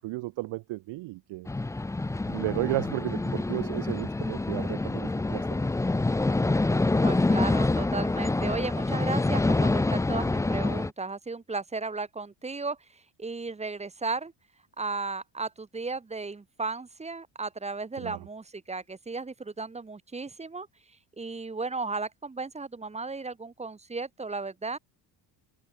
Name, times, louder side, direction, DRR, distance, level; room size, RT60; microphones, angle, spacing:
voice 1, 0.0-1.5 2.3-5.5 18.0-18.2, right 20 dB, 65° right, 0.9 m, -33 dB
sound 1, 1.5-10.9, left 2 dB, 5° left, 0.6 m, -26 dB
voice 2, 7.0-14.3 14.8-20.7 21.2-24.8, right 3 dB, 15° right, 1.5 m, -35 dB
cardioid pair, 145°, 47 cm